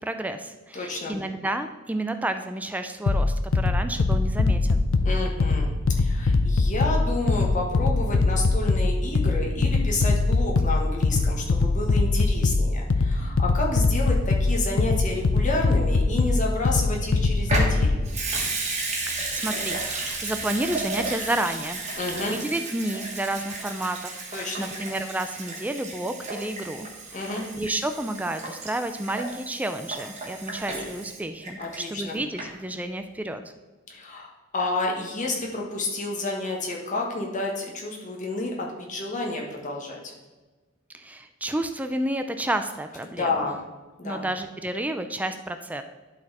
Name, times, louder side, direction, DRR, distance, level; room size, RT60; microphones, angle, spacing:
voice 1, 0.0-4.8 19.1-21.8 22.2-33.4 40.9-43.4 44.0-45.8, right 1 dB, 10° right, 8 dB, 0.3 m, -31 dB
voice 2, 0.7-1.1 5.0-18.0 22.0-22.4 24.3-24.7 27.1-27.4 31.6-32.2 33.9-40.1 43.1-43.6 44.0-44.2, left 2 dB, 40° left, -1 dB, 1.5 m, -30 dB
sound 1, 3.1-18.1, left 3 dB, 80° left, 0.5 m, -22 dB
Water tap faucet / Sink (filling or washing) / Liquid, 17.4-32.1 32.4-32.5, right 3 dB, 35° right, 1.5 m, -33 dB
11.5 x 4.2 x 4.2 m, 1.2 s
head